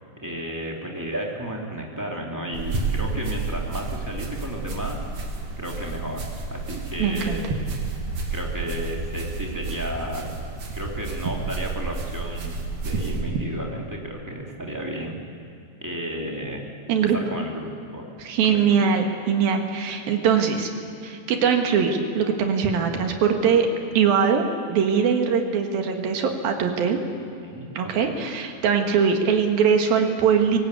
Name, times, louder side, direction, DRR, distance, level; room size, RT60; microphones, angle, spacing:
voice 1, 0.2-5.1 5.6-7.4 8.3-10.3 10.7-15.2 15.8-16.6 17.0-18.0 18.5-18.8 27.4-28.1, equal, 5° right, -1 dB, 1.6 m, -33 dB
sound 1, 2.5-13.2, right 3 dB, 40° right, 2.7 m, -31 dB
voice 2, 7.0-7.4 16.9-17.2 18.2-20.7 21.0-23.7 23.9-27.0 27.7-30.6, right 6 dB, 60° right, 4 dB, 3.2 m, -21 dB
24.5 x 18.0 x 8.4 m, 2.6 s
omnidirectional pair, 5.6 m